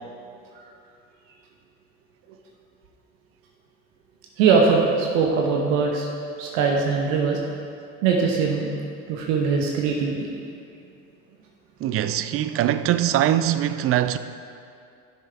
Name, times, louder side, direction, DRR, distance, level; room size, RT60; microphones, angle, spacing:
voice 1, 4.4-6.1 6.4-7.4 8.0-8.8 9.1-10.3, right 5 dB, 70° right, 1.0 m, -21 dB
voice 2, 11.8-14.2, right 11 dB, 35° right, 0.4 m, -22 dB
11.0 x 6.6 x 3.4 m
hypercardioid pair, 65°, 41 cm